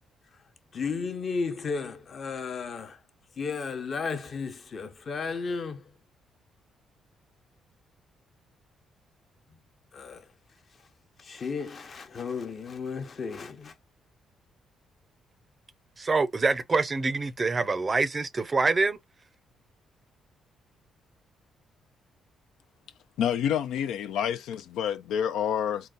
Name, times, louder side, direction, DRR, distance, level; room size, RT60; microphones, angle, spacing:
voice 1, 0.7-3.0 3.4-5.9 9.9-10.3 11.2-13.7, left 5 dB, 45° left, 0.8 m, -34 dB
voice 2, 16.0-19.0, right 3 dB, 30° right, 0.4 m, -25 dB
voice 3, 23.2-25.9, left 9 dB, 85° left, 0.4 m, -28 dB
3.9 x 2.2 x 3.8 m
cardioid pair, 90°, 0 cm